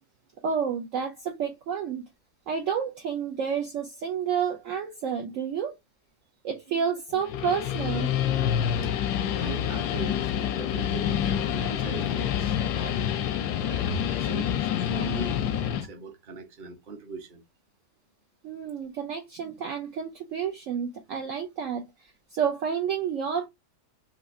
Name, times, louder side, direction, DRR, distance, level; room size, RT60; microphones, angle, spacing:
voice 1, 0.4-2.1 2.5-5.8 6.4-8.1 18.4-21.9 22.3-23.5, right 7 dB, 65° right, 0.9 m, -30 dB
Guitar, 7.1-15.9, left 9 dB, 85° left, 1.1 m, -27 dB
voice 2, 8.6-15.4 15.7-17.4, right 4 dB, 35° right, 0.9 m, -41 dB
4.1 x 2.8 x 2.5 m
omnidirectional pair, 1.7 m